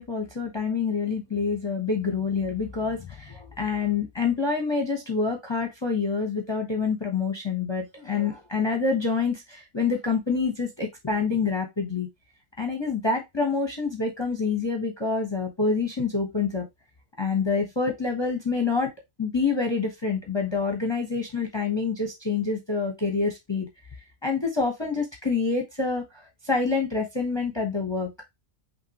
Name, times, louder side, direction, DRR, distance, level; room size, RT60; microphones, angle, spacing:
voice 1, 0.0-12.1 12.6-16.7 17.2-18.9 19.2-23.7 24.2-28.1, left 4 dB, 20° left, 2 dB, 0.9 m, -27 dB
5.9 x 2.9 x 2.9 m, 0.18 s
omnidirectional pair, 1.4 m